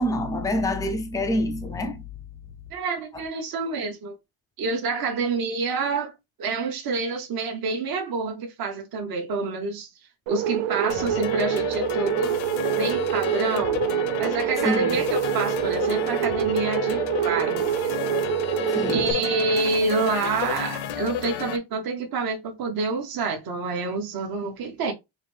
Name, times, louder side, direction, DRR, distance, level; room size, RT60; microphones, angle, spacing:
voice 1, 0.0-2.0 3.1-3.2 14.6-15.0 18.7-19.1, left 1 dB, 10° left, 0.3 m, -26 dB
voice 2, 2.7-4.1 4.6-6.1 6.4-9.9 10.3-12.4 12.8-13.8 14.2-18.1 18.9-24.9, right 4 dB, 45° right, 0.9 m, -27 dB
sound 1, 10.3-19.1, right 10 dB, 70° right, 0.6 m, -26 dB
sound 2, 10.9-21.6, left 10 dB, 70° left, 0.6 m, -32 dB
4.8 x 2.6 x 3.2 m
cardioid pair, 170°, 49 cm